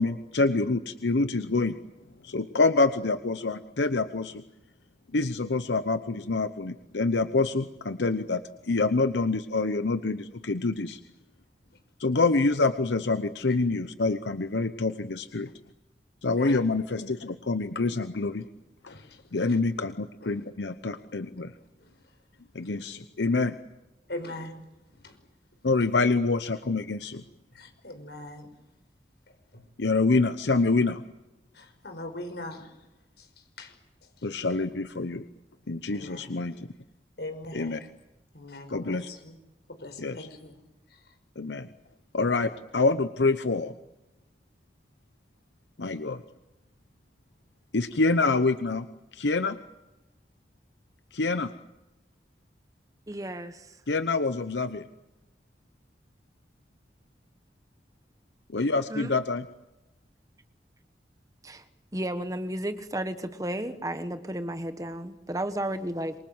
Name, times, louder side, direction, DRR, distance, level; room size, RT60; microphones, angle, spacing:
voice 1, 0.0-1.7 2.2-4.4 5.1-11.0 12.0-15.5 16.2-18.5 18.8-18.9 19.3-21.5 22.5-23.6 25.6-27.2 29.8-31.0 34.2-35.2 35.7-36.5 37.5-37.8 38.7-39.1 40.0-40.2 41.4-41.7 42.1-43.7 45.8-46.2 47.7-48.9 49.1-49.6 51.1-51.5 53.9-54.9 58.5-59.4, left 3 dB, 90° left, 0.9 m, -26 dB
voice 2, 16.2-16.6 18.9-19.6 20.2-20.4 20.9-21.5 21.8-22.2 22.5-23.1 24.1-24.7 24.9-25.2 27.5-28.5 29.3-29.6 31.5-32.9 33.2-34.3 35.9-36.4 37.2-37.9 38.3-39.4 39.7-40.6 40.9-41.2, left 2 dB, 75° left, 5.6 m, -42 dB
voice 3, 53.1-53.8 58.9-59.1 61.4-61.6 61.9-66.1, right 1 dB, 20° right, 1.3 m, -33 dB
27.0 x 24.0 x 7.9 m
head